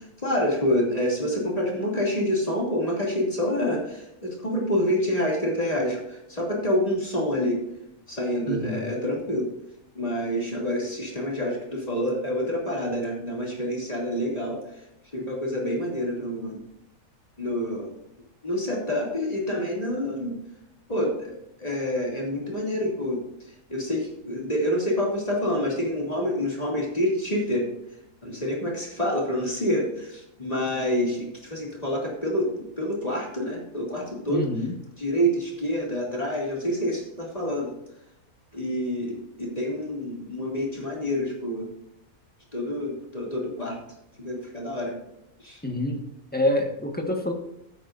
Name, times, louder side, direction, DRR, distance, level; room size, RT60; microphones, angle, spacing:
voice 1, 0.0-7.6 8.1-9.5 9.9-14.6 15.1-16.6 17.4-18.0 18.4-20.3 20.9-23.3 23.7-27.7 28.2-34.5 35.0-37.8 38.5-41.7 42.5-43.8 44.2-45.0 45.4-45.6, equal, 25° left, -3 dB, 3.0 m, -27 dB
voice 2, 8.5-8.9 34.3-34.8 45.6-46.0 46.3-47.3, left 1 dB, 5° left, 2 dB, 1.5 m, -26 dB
13.0 x 9.9 x 2.7 m, 0.84 s
omnidirectional pair, 1.6 m